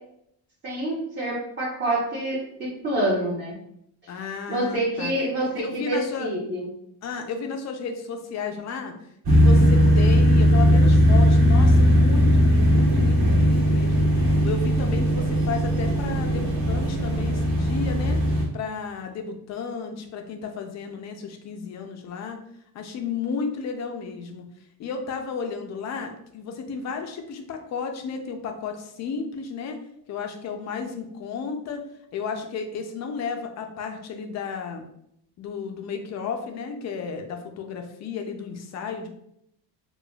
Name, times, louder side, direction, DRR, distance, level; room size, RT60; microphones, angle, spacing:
voice 1, 0.6-3.5 4.5-6.7, right 1 dB, 25° right, -6 dB, 0.8 m, -27 dB
voice 2, 4.1-5.1 5.4-6.3 7.0-8.9 9.3-14.0 14.4-18.2 18.5-22.4 22.7-24.4 24.8-29.8 30.1-31.8 32.1-34.8 35.4-39.1, left 5 dB, 40° left, 5 dB, 0.4 m, -33 dB
sound 1, 9.3-18.4, equal, 60° right, 1.3 m, -18 dB
4.9 x 2.2 x 2.3 m, 0.75 s
cardioid pair, 160°, 43 cm